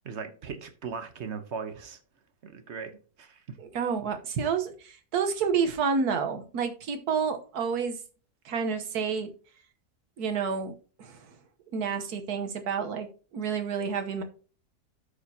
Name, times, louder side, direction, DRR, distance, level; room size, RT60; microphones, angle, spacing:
voice 1, 0.0-2.0 2.4-3.6, right 5 dB, 50° right, 1.1 m, -38 dB
voice 2, 3.6-8.0 8.4-9.3 10.2-11.3 11.7-13.1 13.3-14.2, right 6 dB, 85° right, 1.5 m, -29 dB
13.5 x 5.0 x 2.8 m
omnidirectional pair, 1.6 m